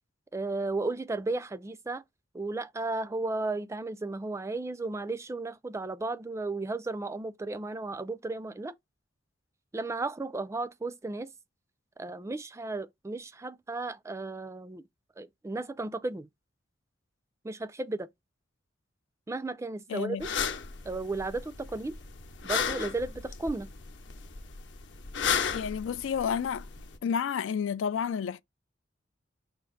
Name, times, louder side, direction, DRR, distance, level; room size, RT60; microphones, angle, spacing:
voice 1, 0.3-2.0 2.3-8.7 9.7-11.3 12.0-14.8 15.2-16.3 17.4-18.1 19.3-20.3 20.8-22.0 22.4-23.7, right 3 dB, 15° right, 0.3 m, -34 dB
voice 2, 19.9-20.3 25.5-26.7 27.0-28.4, left 7 dB, 90° left, 0.3 m, -30 dB
sound 1, 20.2-27.0, left 7 dB, 70° left, 0.8 m, -34 dB
5.1 x 2.5 x 3.7 m
head